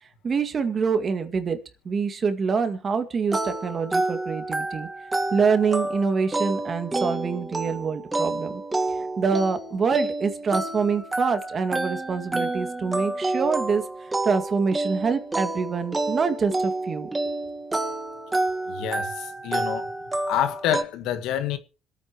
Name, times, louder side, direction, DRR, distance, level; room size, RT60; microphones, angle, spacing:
voice 1, 0.2-1.6 1.9-4.9 5.3-8.6 9.2-13.8 14.2-17.1, right 5 dB, 40° right, 2.0 m, -25 dB
sound 1, 3.3-20.8, right 2 dB, 15° right, 1.6 m, -29 dB
voice 2, 18.7-19.9 20.3-21.6, left 10 dB, 80° left, 1.5 m, -27 dB
26.0 x 9.0 x 3.1 m
cardioid pair, 90°, 0 cm